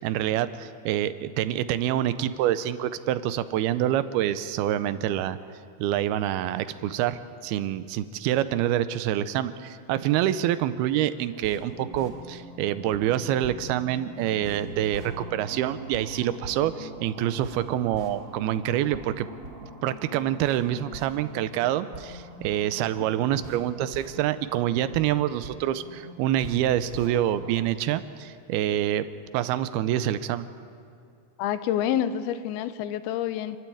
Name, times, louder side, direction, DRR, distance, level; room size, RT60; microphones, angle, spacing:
voice 1, 0.0-5.4 5.8-19.3 19.8-29.1 29.3-30.5, right 12 dB, 85° right, 13 dB, 2.6 m, -26 dB
sound 1, 11.3-27.6, right 2 dB, 35° right, 2.8 m, -43 dB
voice 2, 31.4-33.6, left 10 dB, 80° left, 12 dB, 2.7 m, -28 dB
28.5 x 12.5 x 8.5 m, 2.5 s
omnidirectional pair, 4.5 m